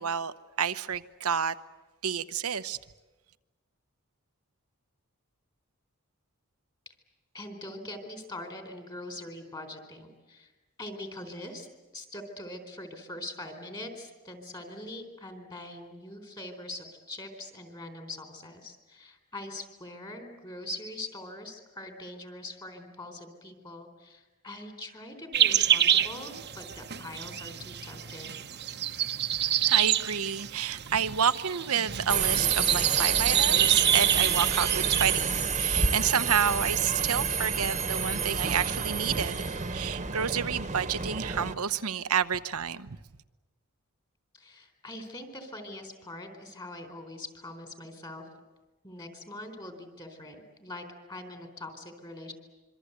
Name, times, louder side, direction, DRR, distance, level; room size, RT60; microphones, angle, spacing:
voice 1, 0.0-1.5 2.0-2.8 29.3-43.0, right 7 dB, 75° right, 1.0 m, -30 dB
voice 2, 7.3-10.5 10.8-11.7 11.9-28.4 44.3-48.3 48.8-52.3, left 1 dB, 20° left, 4.1 m, -42 dB
sound 1, 25.3-35.2, right 10 dB, 50° right, 1.1 m, -28 dB
Subway metro underground, 32.1-41.5, right 6 dB, 30° right, 1.5 m, -28 dB
26.0 x 24.5 x 8.2 m
head